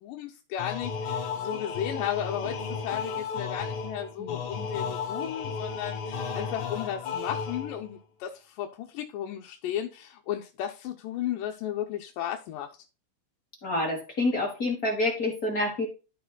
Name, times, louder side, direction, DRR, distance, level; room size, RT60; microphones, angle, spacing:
voice 1, 0.0-12.7, left 10 dB, 80° left, 2.4 m, -34 dB
sound 1, 0.6-8.0, left 5 dB, 65° left, 2.9 m, -34 dB
voice 2, 13.6-15.9, left 2 dB, 40° left, 1.3 m, -28 dB
13.5 x 5.1 x 2.3 m
omnidirectional pair, 3.9 m